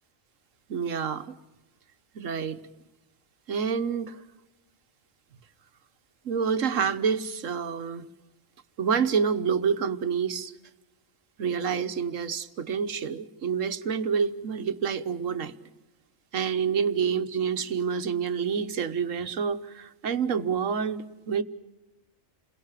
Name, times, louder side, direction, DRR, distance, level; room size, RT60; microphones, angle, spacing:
voice 1, 0.7-1.3 2.1-2.6 3.5-4.2 6.2-8.1 8.8-10.5 11.4-15.6 16.3-21.4, right 6 dB, 80° right, 10 dB, 1.5 m, -28 dB
29.5 x 22.0 x 7.5 m, 1.0 s
omnidirectional pair, 1.3 m